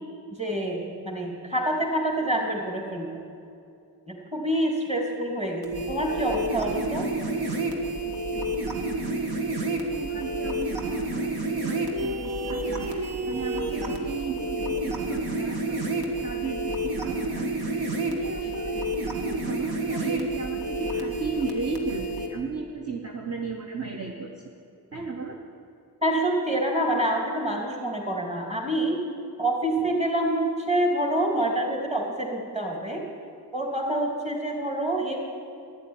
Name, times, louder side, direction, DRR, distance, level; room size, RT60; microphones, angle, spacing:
voice 1, 0.4-3.1 4.1-7.0 26.0-29.0 29.4-33.0 33.5-35.2, right 1 dB, 20° right, 0 dB, 3.0 m, -27 dB
sound 1, 5.6-22.3, right 2 dB, 80° right, 1.8 m, -29 dB
voice 2, 9.9-18.9 19.2-24.5 24.9-25.4, right 4 dB, 40° right, 1 dB, 1.2 m, -35 dB
12.0 x 10.0 x 9.2 m, 2.5 s
wide cardioid pair, 70°, 38 cm